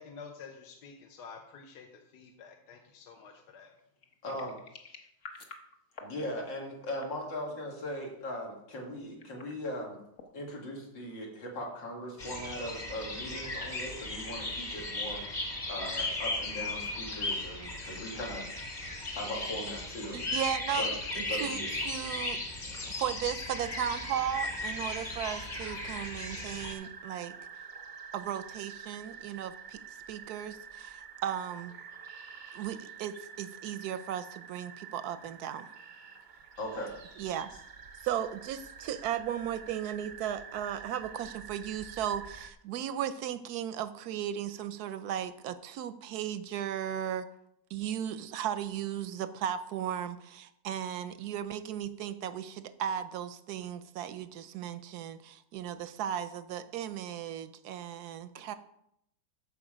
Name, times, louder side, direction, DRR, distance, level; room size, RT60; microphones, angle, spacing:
voice 1, 0.0-3.7, left 5 dB, 70° left, 3 dB, 1.4 m, -49 dB
sound 1, 3.4-6.2 6.7-7.2 9.0-9.6 10.1-10.4 12.0-13.1, left 4 dB, 45° left, 1.4 m, -51 dB
voice 2, 4.2-4.5 6.0-10.0 10.3-15.2 15.7-18.5 19.1-20.2 20.8-20.9 21.3-21.7 36.6-36.9 58.3-58.4, equal, 90° left, -2 dB, 3.1 m, -39 dB
sound 2, 12.2-26.7, left 2 dB, 25° left, 1.3 m, -36 dB
voice 3, 20.1-20.9 21.2-22.4 23.0-27.3 28.1-29.8 30.1-31.7 32.5-35.7 37.2-37.5 38.0-47.3 47.7-58.5, right 10 dB, 70° right, 12 dB, 1.0 m, -36 dB
sound 3, 23.4-42.5, right 6 dB, 40° right, 0.7 m, -48 dB
14.0 x 4.9 x 5.0 m, 0.77 s
omnidirectional pair, 1.9 m